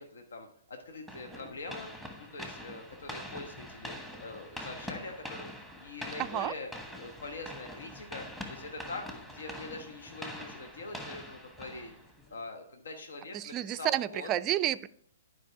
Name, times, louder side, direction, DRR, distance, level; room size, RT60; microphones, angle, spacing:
voice 1, 0.0-1.9 2.2-5.5 5.8-6.7 7.0-11.9 12.3-14.3, left 3 dB, 70° left, 5 dB, 1.2 m, -43 dB
sound 1, 1.1-12.4, equal, 5° left, 1.3 m, -44 dB
voice 2, 6.2-6.5 13.3-14.9, right 12 dB, 25° right, 13 dB, 0.3 m, -30 dB
10.5 x 5.0 x 4.5 m, 0.66 s
figure-of-eight pair, 120°, 0 cm